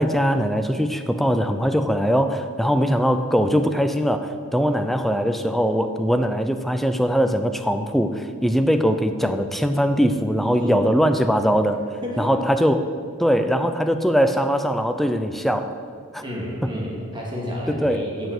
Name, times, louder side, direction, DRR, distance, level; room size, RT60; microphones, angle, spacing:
voice 1, 0.0-11.8 12.2-12.8 13.2-15.7 16.1-16.2 16.6-16.7 17.7-18.1, equal, ahead, 8 dB, 0.5 m, -21 dB
voice 2, 10.6-10.9 12.0-12.3 16.2-18.3, equal, 20° right, -3 dB, 2.6 m, -30 dB
10.5 x 6.9 x 8.2 m, 2.1 s
head